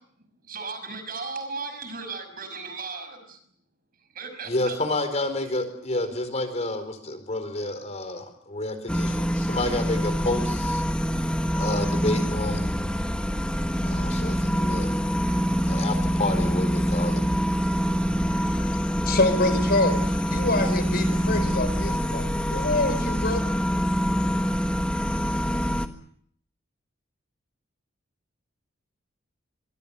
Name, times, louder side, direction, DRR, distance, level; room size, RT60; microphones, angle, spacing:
voice 1, 0.4-3.4 4.1-4.8, right 4 dB, 45° right, 9 dB, 6.0 m, -36 dB
voice 2, 4.4-10.8 11.6-12.7 13.8-14.9 15.7-17.2, left 2 dB, 35° left, 9 dB, 4.5 m, -29 dB
sound 1, 8.9-25.9, equal, 5° left, 1.5 m, -25 dB
voice 3, 18.3-18.8 19.1-23.6, left 2 dB, 50° left, 10 dB, 4.8 m, -26 dB
25.0 x 24.0 x 6.9 m, 0.64 s
head